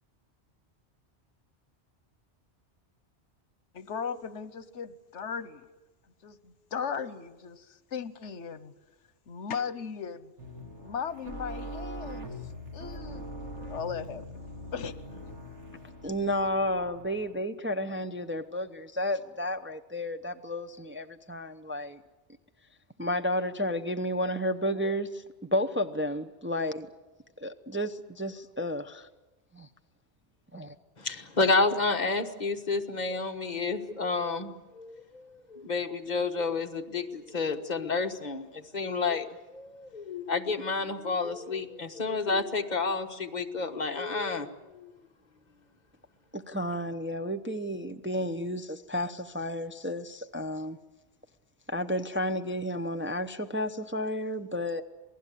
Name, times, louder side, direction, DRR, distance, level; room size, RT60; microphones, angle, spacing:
voice 1, 3.7-5.7 6.2-8.7 9.3-10.3 10.8-14.2 14.7-15.0, left 6 dB, 80° left, 14 dB, 1.3 m, -37 dB
sound 1, 10.4-17.4, equal, 80° right, 2.5 m, -42 dB
voice 2, 16.0-22.0 23.0-26.9 27.4-29.1 29.5-29.7 30.5-30.7 46.3-50.8 51.7-54.8, left 1 dB, 10° right, 6 dB, 0.7 m, -32 dB
voice 3, 31.0-44.9, left 3 dB, 40° left, 5 dB, 1.5 m, -30 dB
28.0 x 18.5 x 8.4 m, 1.1 s
omnidirectional pair, 1.2 m